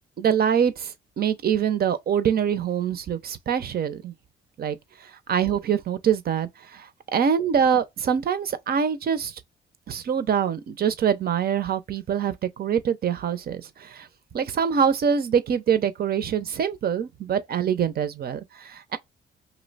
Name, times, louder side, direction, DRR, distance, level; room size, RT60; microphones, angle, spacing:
voice 1, 0.2-4.1 4.6-4.8 5.3-9.3 9.9-14.1 14.3-19.0, right 7 dB, 50° right, 0.6 m, -24 dB
2.8 x 2.1 x 3.9 m
cardioid pair, 90°, 20 cm